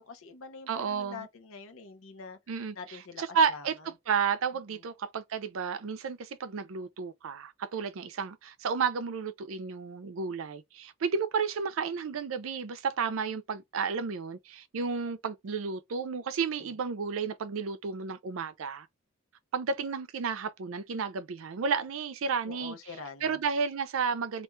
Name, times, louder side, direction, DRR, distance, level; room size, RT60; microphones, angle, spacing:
voice 1, 0.0-2.4 2.8-3.2 3.5-3.6 16.6-16.7 22.5-23.4, left 4 dB, 80° left, 0.7 m, -45 dB
voice 2, 0.7-1.3 2.5-18.9 19.5-24.4, right 5 dB, 75° right, 0.4 m, -32 dB
2.4 x 2.3 x 3.0 m
head